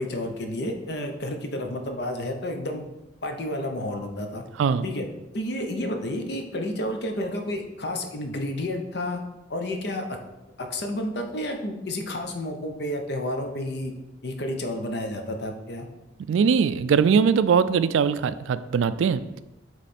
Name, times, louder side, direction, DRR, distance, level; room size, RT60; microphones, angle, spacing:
voice 1, 0.0-2.9 3.2-4.4 4.8-5.1 5.3-9.2 9.5-10.2 10.6-13.9 14.2-15.9, left 1 dB, 55° left, 4 dB, 0.8 m, -30 dB
voice 2, 16.3-19.4, right 6 dB, 75° right, 15 dB, 0.3 m, -21 dB
8.1 x 3.2 x 4.3 m, 1.0 s
head